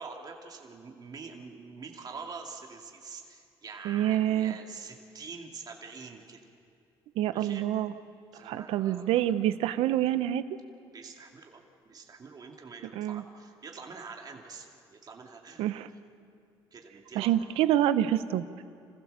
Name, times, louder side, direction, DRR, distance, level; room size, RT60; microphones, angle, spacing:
voice 1, 0.0-6.4 7.3-7.6 8.3-9.3 10.9-15.7 16.7-17.3, right 4 dB, 40° right, 1 dB, 2.6 m, -45 dB
voice 2, 3.8-4.6 7.2-7.9 8.4-10.4 12.9-13.2 15.6-15.9 17.1-18.6, right 12 dB, 80° right, 13 dB, 0.8 m, -27 dB
27.5 x 15.5 x 6.9 m, 2.4 s
supercardioid pair, 80°, 10 cm